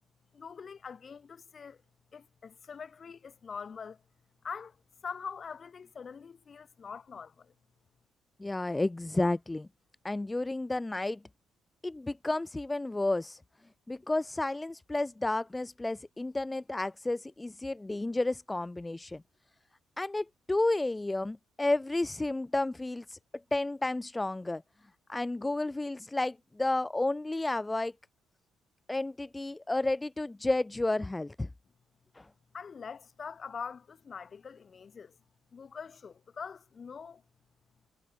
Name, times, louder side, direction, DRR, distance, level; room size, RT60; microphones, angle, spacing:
voice 1, 0.3-1.8 2.1-4.0 4.4-4.8 5.0-7.5 32.5-35.2 35.5-37.2, left 6 dB, 45° left, 1.1 m, -43 dB
voice 2, 8.4-9.7 10.0-11.2 11.8-13.4 13.9-19.2 20.0-23.2 23.5-24.6 25.1-27.9 28.9-31.5 32.2-32.3, left 2 dB, 20° left, 0.4 m, -31 dB
supercardioid pair, 55°, 0 cm